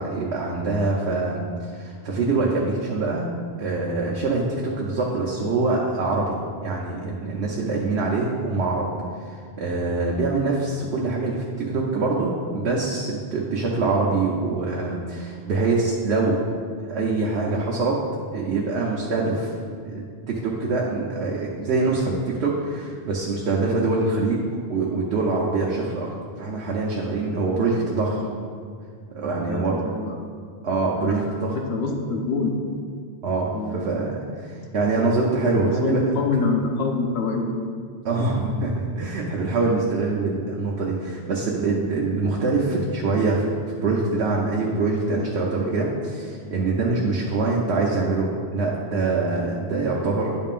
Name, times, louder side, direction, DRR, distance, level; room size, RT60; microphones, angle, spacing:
voice 1, 0.0-3.3 3.6-6.4 6.6-8.9 9.2-16.4 16.8-17.9 18.3-19.6 19.8-24.4 24.7-28.2 29.1-29.9 30.6-31.5 33.2-36.1 38.0-50.4, right 3 dB, 80° right, -3 dB, 1.1 m, -24 dB
voice 2, 27.6-28.4 29.5-29.6 29.9-30.3 31.0-32.6 33.5-33.9 35.6-37.6, left 4 dB, 80° left, 1 dB, 1.1 m, -26 dB
10.0 x 5.5 x 2.5 m, 2.1 s
omnidirectional pair, 1.1 m